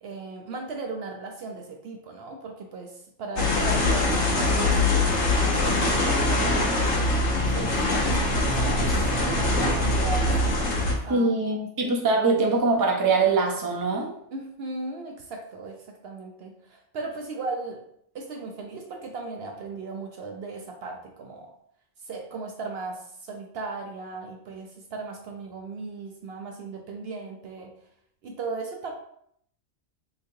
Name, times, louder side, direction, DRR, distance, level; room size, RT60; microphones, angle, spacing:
voice 1, 0.0-6.9 7.5-10.4 11.0-11.4 14.3-17.8 18.1-21.5 22.0-27.7 28.2-28.9, right 3 dB, 65° right, 2 dB, 0.7 m, -37 dB
sound 1, 3.4-10.9, left 2 dB, 60° left, 1.1 m, -23 dB
voice 2, 11.1-14.1, right 3 dB, 35° right, -1 dB, 0.3 m, -23 dB
3.9 x 3.1 x 2.6 m, 0.69 s
omnidirectional pair, 1.4 m